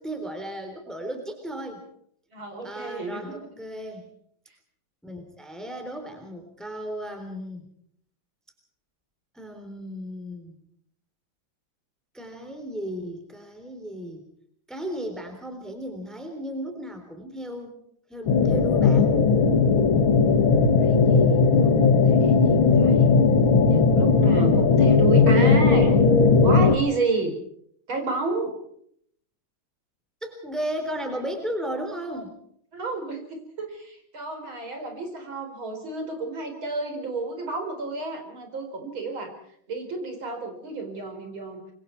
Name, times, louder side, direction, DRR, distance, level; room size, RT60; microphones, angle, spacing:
voice 1, 0.0-1.8 2.6-4.1 5.0-7.7 9.3-10.5 12.1-14.2 14.7-17.7 18.1-19.2 22.2-22.7 30.2-32.3, equal, ahead, 5 dB, 3.5 m, -35 dB
voice 2, 2.3-3.4 20.8-23.1 23.7-25.9 26.3-27.3 27.9-28.6 32.7-39.3 39.7-41.6, right 3 dB, 85° right, 5 dB, 5.3 m, -31 dB
sound 1, 18.3-26.8, left 4 dB, 90° left, 2.5 m, -18 dB
26.0 x 23.0 x 4.6 m, 0.66 s
omnidirectional pair, 2.2 m